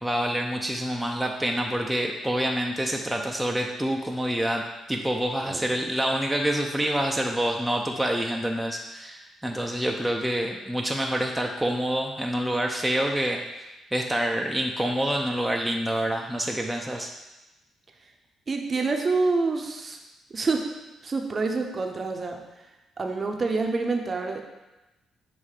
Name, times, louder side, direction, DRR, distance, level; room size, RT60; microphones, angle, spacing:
voice 1, 0.0-13.4 13.9-17.1, right 1 dB, 5° right, 1 dB, 0.6 m, -27 dB
voice 2, 18.5-20.0 20.3-20.7 21.0-22.4 23.0-24.4, right 3 dB, 35° right, 3 dB, 0.7 m, -27 dB
7.4 x 2.7 x 4.8 m, 1.0 s
cardioid pair, 90°, 0 cm